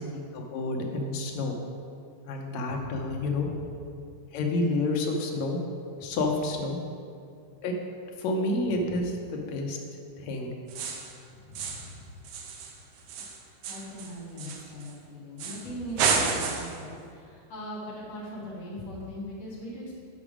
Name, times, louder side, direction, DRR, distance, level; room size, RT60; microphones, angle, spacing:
voice 1, 0.0-1.6 2.3-3.5 4.3-5.6 6.0-6.8 7.6-7.7 8.2-9.8 10.2-10.5, left 2 dB, 75° left, 1 dB, 2.0 m, -29 dB
voice 2, 2.6-3.8 6.0-6.2 8.7-9.1 11.3-12.1 13.2-20.0, equal, 60° left, -6 dB, 2.5 m, -41 dB
sound 1, 10.7-11.2 11.5-11.9 12.2-14.9 15.4-15.7 16.0-16.8, right 5 dB, 85° right, 2.1 m, -30 dB
7.0 x 6.0 x 4.9 m, 2.3 s
omnidirectional pair, 3.4 m